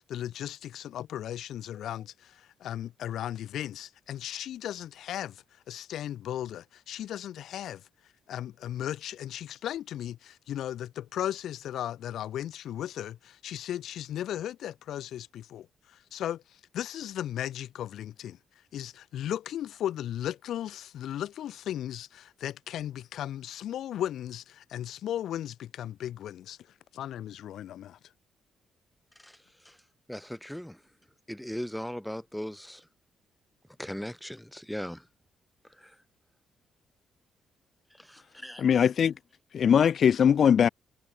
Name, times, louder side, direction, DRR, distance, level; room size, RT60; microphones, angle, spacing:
voice 1, 0.1-7.8 8.3-15.7 16.1-16.4 16.7-18.4 18.7-26.6 26.9-28.0, left 11 dB, 75° left, 1.6 m, -36 dB
voice 2, 29.2-29.8 30.1-30.8 31.3-32.9 33.8-35.1 35.7-36.0 37.9-38.6, equal, 5° left, 2.5 m, -39 dB
voice 3, 38.6-39.1 39.5-40.7, left 8 dB, 55° left, 1.3 m, -21 dB
cardioid pair, 90°, 0 cm